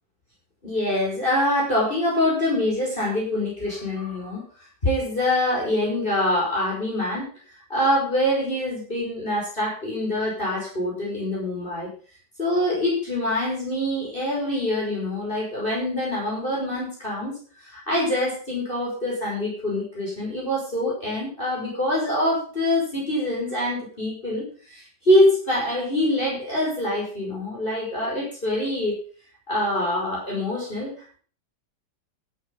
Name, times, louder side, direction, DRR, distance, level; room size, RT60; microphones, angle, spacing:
voice 1, 0.6-4.4 4.8-7.3 7.7-11.9 12.4-29.0 29.5-31.2, left 1 dB, 30° left, -5 dB, 6.1 m, -25 dB
13.5 x 8.7 x 5.5 m, 0.43 s
omnidirectional pair, 1.9 m